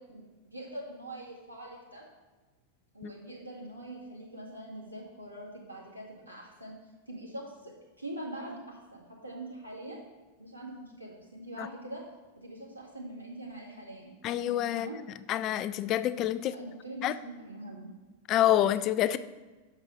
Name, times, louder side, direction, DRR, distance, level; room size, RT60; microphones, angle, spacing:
voice 1, 0.0-2.0 2.9-6.7 7.1-10.1 10.4-12.0 12.4-14.1 14.7-15.0 16.4-17.9, right 1 dB, 90° right, -4 dB, 1.7 m, -43 dB
voice 2, 14.2-14.9 15.3-16.5 17.0-17.2 18.3-19.2, left 12 dB, 35° left, 14 dB, 0.3 m, -27 dB
6.2 x 5.3 x 5.3 m, 1.2 s
figure-of-eight pair, 90°, 0 cm